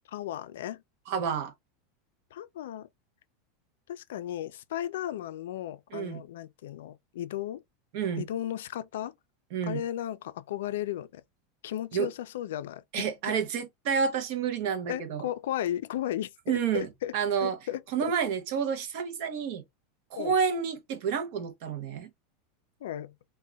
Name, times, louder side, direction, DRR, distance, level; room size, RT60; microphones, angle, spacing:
voice 1, 0.1-0.8 2.3-2.9 3.9-7.6 8.2-9.1 9.7-11.2 11.6-13.1 14.9-17.1 17.4-18.1 20.2-20.3 22.8-23.1, left 12 dB, 90° left, 0.4 m, -35 dB
voice 2, 1.1-1.5 5.9-6.2 7.9-8.3 9.5-9.8 11.9-12.1 12.9-15.3 16.5-17.6 17.9-19.6 20.1-22.1, right 7 dB, 45° right, 0.6 m, -29 dB
2.3 x 2.1 x 3.8 m
supercardioid pair, 180°, 0 cm